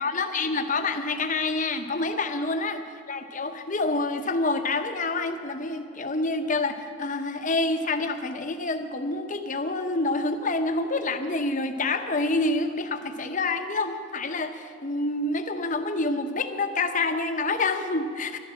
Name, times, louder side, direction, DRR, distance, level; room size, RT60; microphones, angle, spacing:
voice 1, 0.0-2.8 3.1-18.4, left 3 dB, 35° left, 7 dB, 0.8 m, -27 dB
11.5 x 11.0 x 7.5 m, 2.3 s
head